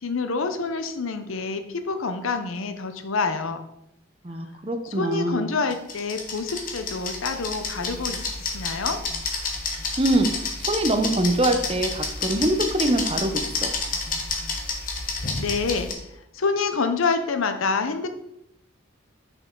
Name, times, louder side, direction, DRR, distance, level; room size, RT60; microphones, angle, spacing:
voice 1, 0.0-3.7 4.8-9.0 15.4-18.1, left 4 dB, 80° left, 8 dB, 0.7 m, -27 dB
voice 2, 4.2-5.4 10.0-13.7, right 1 dB, 30° right, 7 dB, 0.6 m, -24 dB
sound 1, 5.7-15.9, left 4 dB, 40° left, 1.0 m, -30 dB
6.1 x 5.4 x 3.8 m, 0.79 s
head